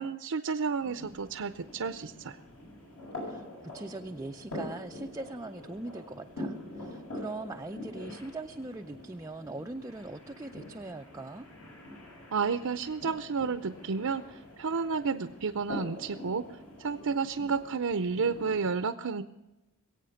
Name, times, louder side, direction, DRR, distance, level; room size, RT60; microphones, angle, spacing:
voice 1, 0.0-2.4 12.3-16.5 16.8-19.2, right 5 dB, 70° right, 10 dB, 0.6 m, -31 dB
sound 1, 0.8-18.7, left 1 dB, 65° left, 6.8 m, -44 dB
voice 2, 3.2-11.5, right 2 dB, 15° right, 4 dB, 0.4 m, -41 dB
21.5 x 8.6 x 5.8 m, 1.0 s
head